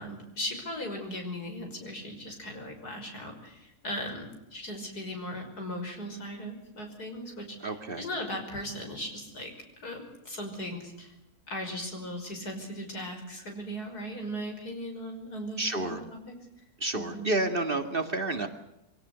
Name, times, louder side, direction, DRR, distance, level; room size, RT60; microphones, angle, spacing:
voice 1, 0.0-11.1 11.5-16.0 16.3-16.4 16.9-17.3, equal, 85° left, 4 dB, 6.3 m, -38 dB
voice 2, 7.6-8.0 15.6-16.0 16.8-18.5, right 2 dB, 35° right, 7 dB, 2.3 m, -30 dB
24.5 x 17.5 x 8.1 m, 0.87 s
omnidirectional pair, 1.6 m